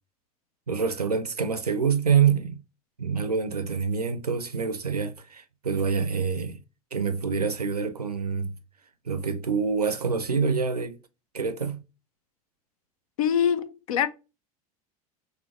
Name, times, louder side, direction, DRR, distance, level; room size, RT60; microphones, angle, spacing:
voice 1, 0.7-2.6 3.0-6.6 6.9-8.5 9.1-11.0 11.3-11.8, right 6 dB, 90° right, 0.5 m, -26 dB
voice 2, 13.2-14.1, left 8 dB, 70° left, 0.5 m, -24 dB
4.1 x 2.7 x 2.4 m
figure-of-eight pair, 75°, 19 cm